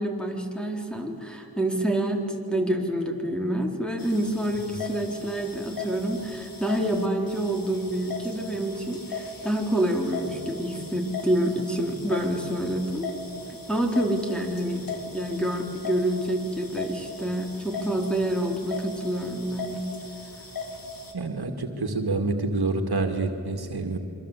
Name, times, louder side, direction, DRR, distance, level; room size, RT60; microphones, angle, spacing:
voice 1, 0.0-13.1 13.7-14.8 15.1-19.8, right 1 dB, ahead, 1 dB, 4.1 m, -27 dB
sound 1, 4.0-21.1, left 3 dB, 60° left, 3.4 m, -38 dB
voice 2, 21.1-24.0, right 3 dB, 70° right, 4 dB, 2.2 m, -27 dB
27.0 x 24.5 x 8.4 m, 2.8 s
cardioid pair, 50°, 39 cm